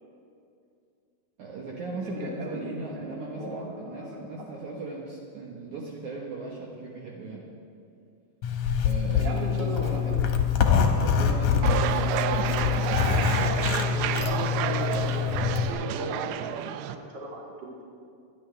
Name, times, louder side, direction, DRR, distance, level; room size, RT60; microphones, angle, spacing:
voice 1, 1.4-7.5 8.8-10.3 11.0-11.9 12.3-13.5, right 3 dB, 60° right, -3 dB, 2.4 m, -38 dB
voice 2, 1.9-4.2 9.2-10.2 12.2-12.6 13.4-17.8, right 1 dB, 35° right, -2 dB, 2.2 m, -37 dB
Zipper (clothing), 8.4-15.7, left 7 dB, 65° left, 2.1 m, -25 dB
sound 1, 11.6-17.0, right 10 dB, 85° right, 2.5 m, -30 dB
26.0 x 10.5 x 3.4 m, 2.4 s
omnidirectional pair, 4.4 m